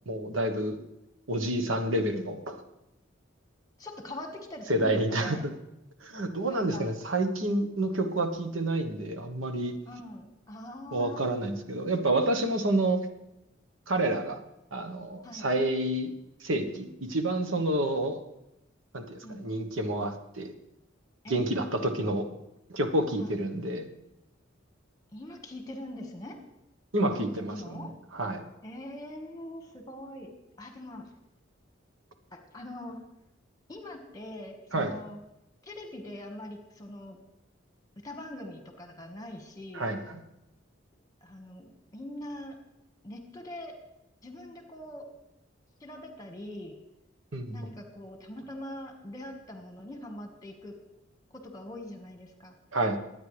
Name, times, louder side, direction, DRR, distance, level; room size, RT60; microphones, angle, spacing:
voice 1, 0.1-0.8 1.3-2.6 4.7-5.5 6.0-9.8 10.9-13.1 13.9-14.4 14.7-16.1 16.4-18.2 18.9-20.5 21.3-22.3 22.7-23.9 26.9-27.9 28.1-28.4 34.7-35.0 39.7-40.2 47.3-47.6 52.7-53.0, right 1 dB, 85° right, 7 dB, 1.2 m, -29 dB
voice 2, 3.8-5.4 6.5-6.9 9.8-11.3 15.2-15.5 19.2-19.5 21.2-21.5 23.2-23.4 25.1-26.4 27.1-27.9 28.6-30.3 30.6-31.1 32.3-33.0 33.7-35.2 35.6-37.2 38.0-39.9 41.2-42.6 43.0-43.8 44.2-45.0 45.8-46.7 47.5-50.7 51.3-52.5, left 1 dB, 20° left, 4 dB, 1.7 m, -42 dB
22.5 x 9.3 x 3.4 m, 0.89 s
head